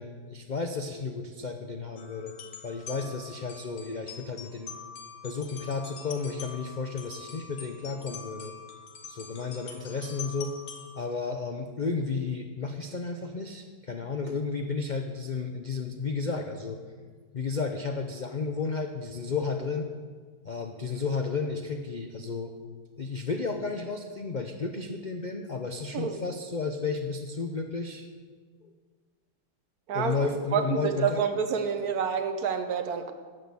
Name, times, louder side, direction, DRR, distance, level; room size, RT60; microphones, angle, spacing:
voice 1, 0.0-2.3 2.6-4.7 5.2-8.5 9.1-10.6 10.9-16.8 17.3-19.9 20.4-22.5 23.0-28.1 28.6-28.7 29.9-31.2, left 4 dB, 60° left, 4 dB, 0.4 m, -32 dB
sound 1, 2.0-11.1, left 6 dB, 75° left, 2.0 m, -45 dB
voice 2, 30.5-33.1, right 6 dB, 65° right, 7 dB, 1.4 m, -28 dB
11.0 x 8.3 x 7.0 m, 1.5 s
omnidirectional pair, 1.8 m